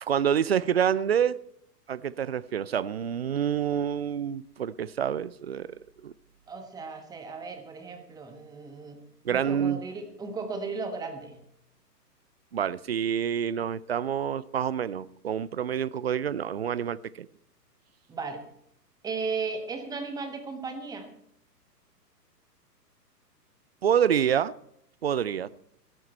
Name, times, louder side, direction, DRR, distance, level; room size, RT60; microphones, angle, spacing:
voice 1, 0.0-1.4 1.9-5.7 6.0-6.1 9.2-9.8 12.5-17.3 23.8-24.5 25.0-25.5, right 8 dB, 40° right, 19 dB, 0.4 m, -27 dB
voice 2, 6.5-9.0 9.3-11.4 18.1-18.4 19.0-21.1, right 4 dB, 10° right, 6 dB, 1.3 m, -35 dB
16.5 x 12.5 x 4.5 m, 0.70 s
figure-of-eight pair, 120°, 49 cm